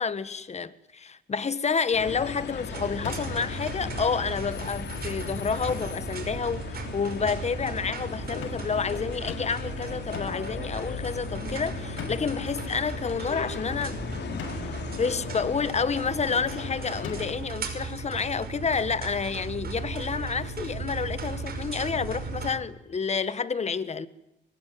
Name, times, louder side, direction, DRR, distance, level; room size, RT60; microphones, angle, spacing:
voice 1, 0.0-14.0 14.5-24.1, left 5 dB, 35° left, 1.4 m, -29 dB
sound 1, 1.9-17.3, left 6 dB, 60° left, 4.0 m, -38 dB
sound 2, 2.7-22.5, right 4 dB, 50° right, 5.3 m, -37 dB
sound 3, 3.0-3.5 5.7-6.1 8.4-8.8 9.3-9.7 10.1-10.5 12.0-12.5 14.4-14.8 17.0-17.6, left 6 dB, 80° left, 6.5 m, -40 dB
24.5 x 21.0 x 9.4 m
cardioid pair, 90°, 20 cm